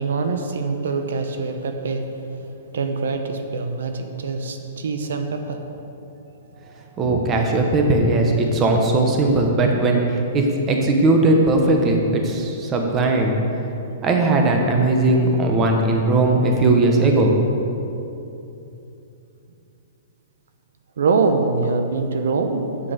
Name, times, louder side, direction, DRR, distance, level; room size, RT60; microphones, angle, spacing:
voice 1, 0.0-2.1 2.7-5.7 21.0-22.9, right 4 dB, 85° right, 6 dB, 0.8 m, -24 dB
voice 2, 7.0-13.4 14.0-17.3, right 2 dB, 20° right, 2 dB, 1.1 m, -18 dB
7.7 x 7.3 x 6.6 m, 2.8 s
hypercardioid pair, 155°, 0 cm